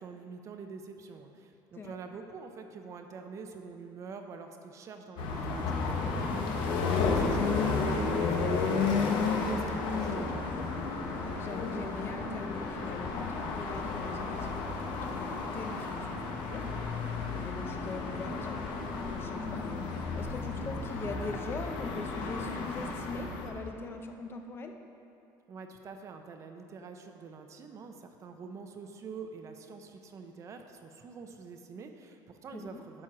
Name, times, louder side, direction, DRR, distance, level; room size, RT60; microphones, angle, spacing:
voice 1, 0.0-6.7 7.1-10.5 25.5-33.0, right 5 dB, 35° right, 6 dB, 0.6 m, -46 dB
sound 1, 5.2-23.5, left 4 dB, 70° left, 1.0 m, -32 dB
voice 2, 11.2-16.6 17.4-18.7 19.1-19.8 20.1-24.7 32.5-32.8, left 3 dB, 25° left, 5 dB, 0.6 m, -41 dB
11.0 x 4.5 x 6.0 m, 2.7 s
cardioid pair, 145°, 8 cm